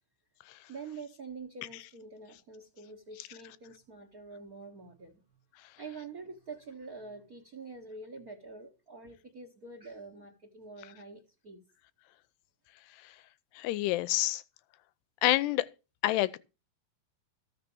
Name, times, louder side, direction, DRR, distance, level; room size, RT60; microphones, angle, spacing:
voice 1, 0.7-5.2 5.8-11.6, right 4 dB, 65° right, 0.8 m, -46 dB
voice 2, 13.6-14.4 15.2-15.7 16.0-16.4, left 16 dB, 90° left, 2.8 m, -27 dB
14.0 x 6.7 x 7.0 m
omnidirectional pair, 4.7 m